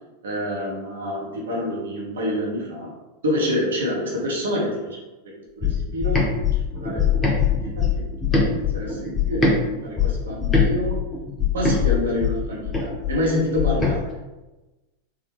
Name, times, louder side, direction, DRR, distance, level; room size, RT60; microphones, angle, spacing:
voice 1, 0.2-2.9 3.2-5.0 5.6-7.6 8.3-11.0 11.5-14.1, left 1 dB, 65° right, -4 dB, 0.8 m, -27 dB
sound 1, 5.6-9.6 10.0-14.0, left 6 dB, 20° left, 0.6 m, -22 dB
3.4 x 2.2 x 3.2 m, 1.1 s
figure-of-eight pair, 90°, 0 cm